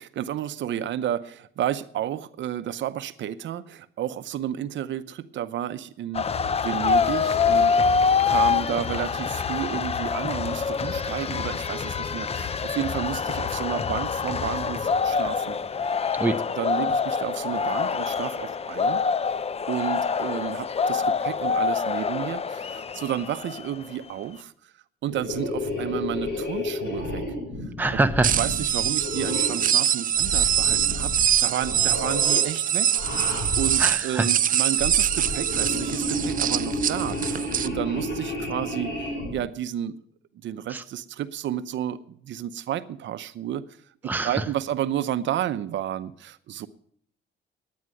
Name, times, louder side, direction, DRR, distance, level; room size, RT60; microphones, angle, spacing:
voice 1, 0.0-6.3 6.6-15.6 15.8-15.9 16.6-19.0 19.7-24.5 25.0-27.2 28.4-31.1 31.4-39.0 39.3-40.0 40.4-43.6 44.2-46.7, right 11 dB, 70° right, 13 dB, 0.7 m, -31 dB
sound 1, 6.1-23.9, left 5 dB, 30° left, 0.6 m, -25 dB
sound 2, 25.1-29.7 30.2-31.3 31.6-32.4 32.9-33.9 34.6-39.3, left 1 dB, 60° left, 6.7 m, -31 dB
voice 2, 27.8-28.3 33.8-34.3 40.7-40.8 44.0-44.4, right 2 dB, 10° right, 7 dB, 0.8 m, -24 dB
sound 3, 28.2-37.7, right 10 dB, 45° right, 0.4 m, -24 dB
11.0 x 9.5 x 7.6 m, 0.62 s
cardioid pair, 90°, 20 cm